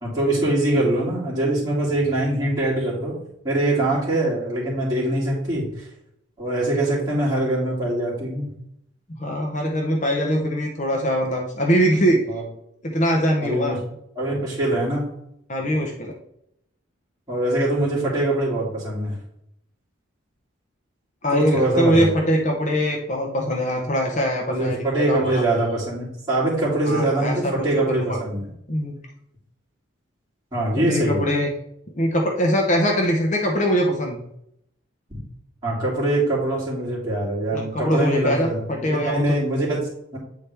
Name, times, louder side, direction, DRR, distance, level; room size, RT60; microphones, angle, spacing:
voice 1, 0.0-3.1 3.4-5.9 6.4-8.5 12.3-12.4 13.4-13.8 14.2-15.0 17.3-19.1 21.3-22.2 24.5-28.5 30.5-31.2 35.6-40.2, right 1 dB, 20° right, -7 dB, 2.6 m, -23 dB
voice 2, 9.2-12.2 12.8-13.7 15.5-16.1 21.2-25.4 26.9-28.2 28.7-29.0 30.9-31.5 31.9-34.2 37.5-38.5 38.8-39.2, equal, 35° left, 1 dB, 0.7 m, -22 dB
8.2 x 4.3 x 3.4 m, 0.76 s
head